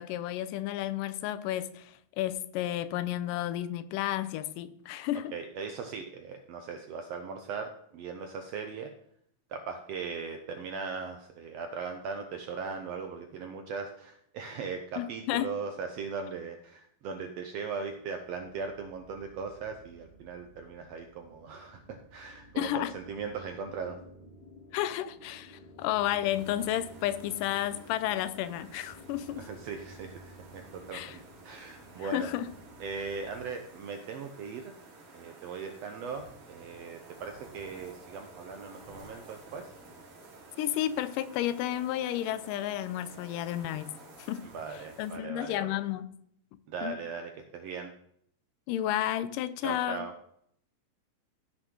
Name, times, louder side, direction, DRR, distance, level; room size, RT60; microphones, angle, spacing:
voice 1, 0.0-5.3 15.0-15.6 22.6-22.9 24.7-29.5 30.9-31.2 32.0-32.5 40.6-44.5 45.0-46.1 46.8-46.9 48.7-50.1, left 12 dB, 85° left, 2.2 m, -32 dB
voice 2, 5.3-8.9 9.5-24.0 29.4-32.3 32.8-34.7 35.1-39.7 44.4-45.8 46.7-47.9 49.6-50.1, right 5 dB, 80° right, 1.4 m, -39 dB
sound 1, 17.9-33.5, equal, 60° left, 4.0 m, -54 dB
sound 2, 26.3-45.2, right 2 dB, 60° right, 3.4 m, -52 dB
15.0 x 6.1 x 3.7 m
omnidirectional pair, 3.8 m